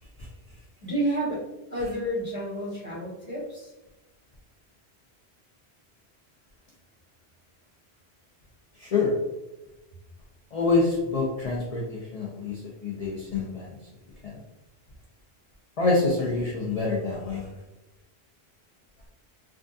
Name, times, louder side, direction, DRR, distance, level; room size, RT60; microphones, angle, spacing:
voice 1, 0.8-1.4 1.7-3.7, right 1 dB, 10° right, -9 dB, 1.5 m, -30 dB
voice 2, 8.8-9.1 10.5-13.7 14.2-14.3 15.8-17.5, left 3 dB, 50° left, -3 dB, 0.5 m, -26 dB
3.5 x 2.3 x 2.6 m, 1.0 s
omnidirectional pair, 1.1 m